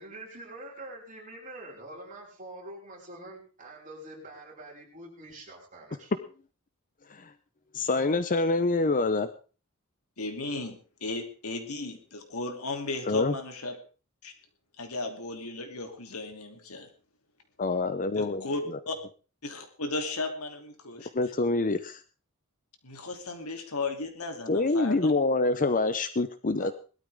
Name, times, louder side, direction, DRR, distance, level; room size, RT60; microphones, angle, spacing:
voice 1, 0.0-6.1, right 1 dB, 40° right, -1 dB, 5.6 m, -45 dB
voice 2, 7.7-9.3 13.1-13.3 17.6-18.4 21.1-22.0 24.5-26.7, left 3 dB, 40° left, 12 dB, 0.7 m, -26 dB
voice 3, 10.2-13.8 14.2-14.3 14.8-16.9 18.1-19.0 19.4-21.1 22.8-25.1 26.6-26.7, left 3 dB, 75° left, 4 dB, 3.0 m, -35 dB
20.5 x 13.0 x 3.6 m, 0.36 s
head